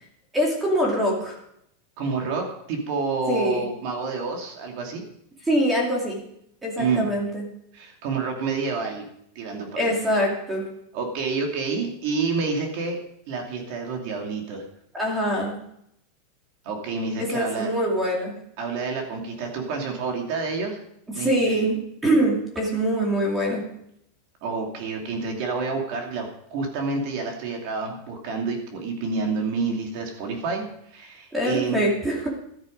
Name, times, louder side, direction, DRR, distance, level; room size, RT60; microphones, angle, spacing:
voice 1, 0.3-1.4 3.3-3.7 5.5-6.2 6.6-7.4 9.8-10.6 14.9-15.6 17.2-18.3 21.2-23.7 31.3-32.3, right 1 dB, 10° right, -2 dB, 2.5 m, -24 dB
voice 2, 2.0-5.0 6.8-7.0 7.7-9.1 9.3-9.9 10.9-13.0 13.3-14.6 16.6-17.7 18.6-20.8 21.1-21.5 24.4-31.8, right 4 dB, 45° right, 2 dB, 2.7 m, -28 dB
13.0 x 9.5 x 5.3 m, 0.74 s
supercardioid pair, 175°, 0 cm